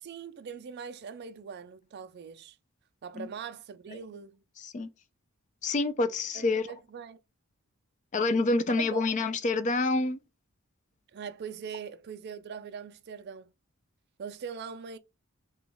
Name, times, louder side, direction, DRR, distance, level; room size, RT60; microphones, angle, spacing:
voice 1, 0.0-2.6 3.0-4.4 6.3-7.2 8.7-9.0 11.1-13.5 14.2-15.0, right 6 dB, 50° right, 0.3 m, -41 dB
voice 2, 5.6-6.6 8.1-10.2, left 3 dB, 35° left, 0.3 m, -27 dB
3.0 x 2.2 x 3.4 m
head